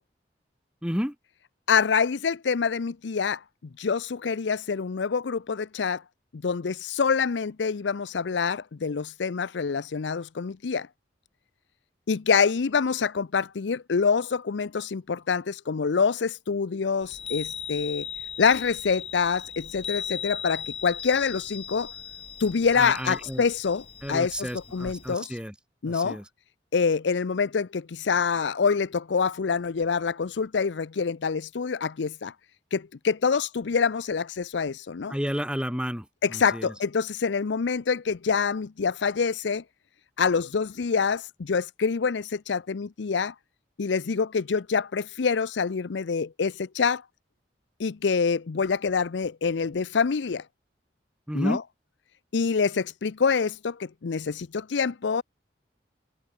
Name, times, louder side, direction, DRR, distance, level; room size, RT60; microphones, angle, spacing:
voice 1, 0.8-1.1 22.7-23.4 24.0-25.5 25.8-26.2 35.1-36.7 51.3-51.6, equal, 5° right, 4.9 m, -31 dB
voice 2, 1.7-3.4 3.8-6.0 6.3-10.9 12.1-18.1 18.4-21.9 22.4-25.4 25.8-26.2 26.7-32.3 32.7-35.1 36.2-39.6 40.2-43.3 43.8-47.0 47.8-50.4 51.3-51.6 52.3-55.2, left 5 dB, 90° left, 0.5 m, -26 dB
Chime, 17.0-25.1, left 7 dB, 30° left, 2.7 m, -38 dB
head